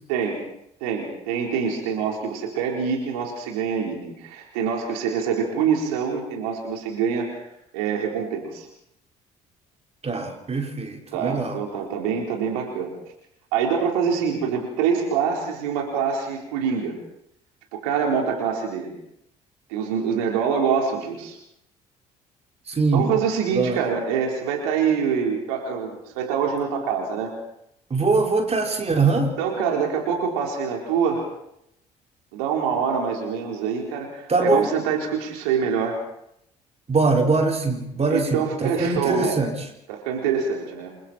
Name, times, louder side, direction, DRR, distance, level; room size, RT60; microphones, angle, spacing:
voice 1, 0.8-7.5 7.7-8.7 11.1-12.9 13.5-17.0 17.7-19.0 19.7-21.4 22.9-27.3 29.4-31.2 32.3-36.0 38.1-39.5 39.9-40.9, right 6 dB, 75° right, 1 dB, 4.3 m, -25 dB
voice 2, 10.0-11.6 22.7-23.1 23.5-23.8 27.9-29.3 34.3-34.7 36.9-39.6, right 3 dB, 35° right, 2 dB, 4.7 m, -22 dB
29.0 x 23.0 x 4.5 m, 0.77 s
figure-of-eight pair, 50°, 19 cm